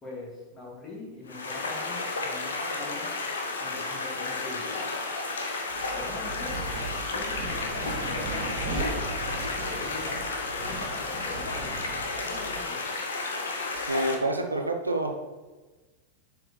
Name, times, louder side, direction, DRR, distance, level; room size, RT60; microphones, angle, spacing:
voice 1, 0.0-3.1 3.6-4.9 5.9-6.7 7.1-7.5 8.1-9.0 9.6-10.3 10.6-11.8 12.2-12.9, left 2 dB, 25° left, -3 dB, 2.0 m, -42 dB
sound 1, 1.3-14.2, left 3 dB, 70° left, 0.7 m, -32 dB
Wind, 5.7-12.6, right 3 dB, 45° right, 1.4 m, -38 dB
voice 2, 13.9-15.2, right 1 dB, 80° right, 4 dB, 0.5 m, -27 dB
7.2 x 4.3 x 3.2 m, 1.2 s
figure-of-eight pair, 90°, 0 cm